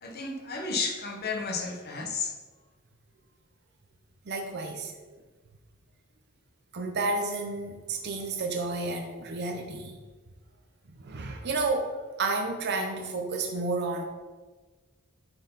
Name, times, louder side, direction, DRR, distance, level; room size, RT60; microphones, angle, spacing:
voice 1, 0.0-2.3, left 4 dB, 50° left, 2 dB, 1.3 m, -32 dB
voice 2, 4.3-4.9 6.7-10.0 11.0-14.0, right 3 dB, 50° right, 3 dB, 0.7 m, -31 dB
9.6 x 4.5 x 4.0 m, 1.3 s
head